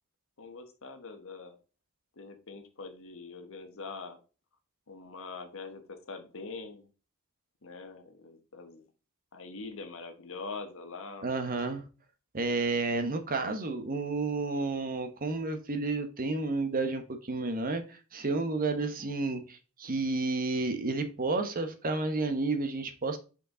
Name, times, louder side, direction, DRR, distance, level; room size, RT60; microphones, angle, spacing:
voice 1, 0.4-1.6 2.2-4.2 4.9-6.9 7.6-8.9 9.3-11.3, left 4 dB, 65° left, 7 dB, 1.2 m, -43 dB
voice 2, 11.2-11.8 12.3-23.2, right 3 dB, 40° right, 8 dB, 0.9 m, -31 dB
5.5 x 5.2 x 3.7 m, 0.34 s
head